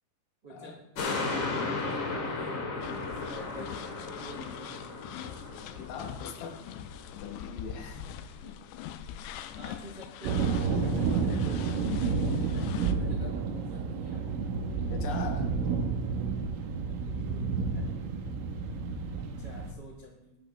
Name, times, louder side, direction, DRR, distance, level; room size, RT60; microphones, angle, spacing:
voice 1, 0.4-0.7 1.1-3.7 4.2-4.9 9.5-11.7 12.5-14.2 17.0-18.0 19.2-20.4, equal, 55° right, -3 dB, 1.1 m, -48 dB
sound 1, 1.0-7.6 8.0-8.1, left 3 dB, 50° left, 2.5 m, -35 dB
sound 2, 2.8-12.9, left 10 dB, 90° left, 2.6 m, -42 dB
voice 2, 5.8-6.6 7.1-8.1 8.4-8.6 10.2-10.3 14.9-15.6, left 6 dB, 75° left, 3 dB, 3.4 m, -41 dB
sound 3, 10.2-19.7, right 5 dB, 80° right, 3.6 m, -30 dB
22.0 x 7.6 x 3.3 m, 0.91 s
omnidirectional pair, 5.8 m